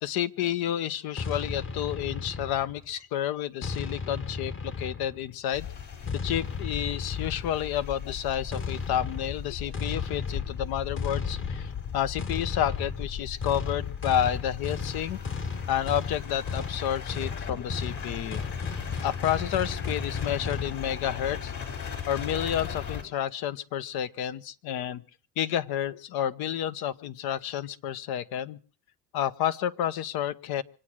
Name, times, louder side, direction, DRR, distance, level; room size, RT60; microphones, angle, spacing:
voice 1, 0.0-5.7 6.2-15.2 15.7-18.4 19.0-21.5 21.8-25.0 25.4-28.6 29.1-30.6, left 10 dB, 70° left, 14 dB, 1.0 m, -30 dB
sound 1, 1.2-2.9 3.6-5.3 6.1-7.7 8.5-20.8, left 4 dB, 30° left, 1.4 m, -35 dB
sound 2, 5.5-23.0, left 7 dB, 50° left, 5.1 m, -37 dB
25.5 x 8.9 x 6.3 m, 0.42 s
supercardioid pair, 80°, 38 cm